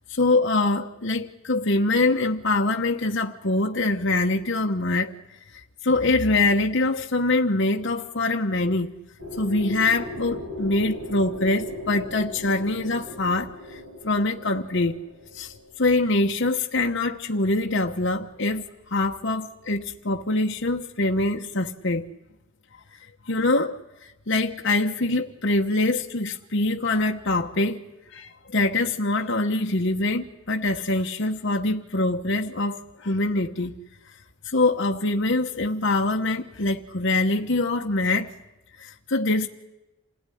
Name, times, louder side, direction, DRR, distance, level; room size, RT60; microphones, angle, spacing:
voice 1, 0.1-5.1 5.5-8.9 9.4-15.0 15.3-22.1 22.9-23.0 23.3-27.8 28.1-33.7 34.4-38.3 38.8-39.5, left 2 dB, 55° left, 1.1 m, -24 dB
sound 1, 9.2-17.0, left 1 dB, 90° right, 6.7 m, -38 dB
27.5 x 17.0 x 10.0 m
head